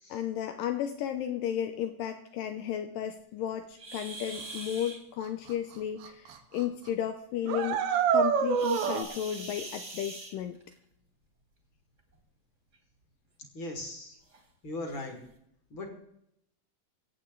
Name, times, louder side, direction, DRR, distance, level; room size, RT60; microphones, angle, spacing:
voice 1, 0.1-7.8 8.1-10.6, left 10 dB, 90° left, 8 dB, 1.9 m, -33 dB
sound 1, 3.8-5.0 8.5-10.8 12.0-12.2 12.7-12.8 13.4-13.5 14.3-14.4 14.9-15.1, right 2 dB, 25° right, 1.9 m, -43 dB
sound 2, 5.5-5.6 6.0-6.3 6.6-6.7 7.4-9.0, right 7 dB, 70° right, 2.9 m, -26 dB
voice 2, 13.5-14.2 14.6-15.2 15.7-15.9, left 2 dB, 35° left, 3 dB, 2.4 m, -38 dB
26.0 x 8.6 x 3.8 m, 0.77 s
omnidirectional pair, 4.9 m